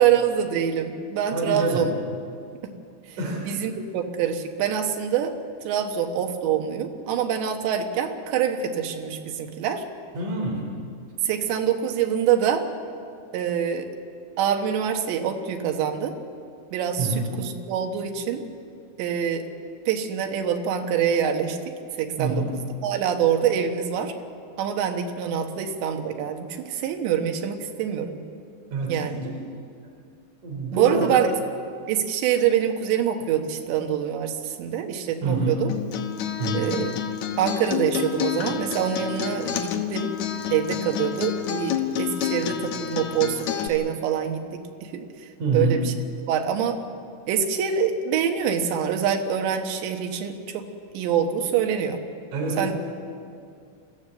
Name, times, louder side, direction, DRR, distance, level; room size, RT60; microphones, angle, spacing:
voice 1, 0.0-1.9 3.5-5.3 5.7-9.8 11.2-12.7 13.3-13.9 14.4-16.1 16.7-18.4 19.0-19.4 19.9-21.6 22.0-22.4 22.8-24.1 24.6-28.2 28.9-29.2 30.7-31.3 31.9-35.7 36.5-37.0 37.4-40.1 40.5-44.4 44.8-45.9 46.3-46.8 47.3-50.7 50.9-52.0 52.6-52.7, right 8 dB, 85° right, 4 dB, 3.7 m, -25 dB
voice 2, 1.3-1.9 3.2-3.4 10.1-10.7 17.0-17.3 22.2-22.5 28.7-29.3 30.4-31.3 35.2-35.7 36.4-36.7 45.4-45.8 52.3-52.7, right 3 dB, 50° right, -1 dB, 5.0 m, -26 dB
Acoustic guitar, 35.7-43.7, left 9 dB, 75° left, 1.7 m, -29 dB
28.0 x 14.5 x 7.7 m, 2.4 s
omnidirectional pair, 4.9 m